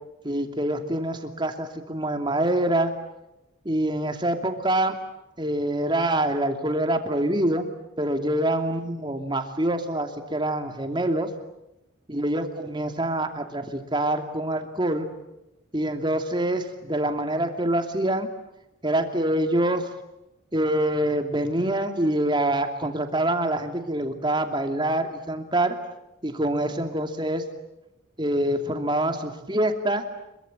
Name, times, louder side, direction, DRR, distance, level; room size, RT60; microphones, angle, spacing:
voice 1, 0.2-2.9 3.6-5.0 5.4-7.7 8.0-11.3 12.1-15.1 15.7-18.3 18.8-19.9 20.5-25.8 26.2-27.4 28.2-30.0, right 1 dB, 20° right, 6 dB, 2.7 m, -25 dB
27.0 x 23.5 x 9.1 m, 0.90 s
head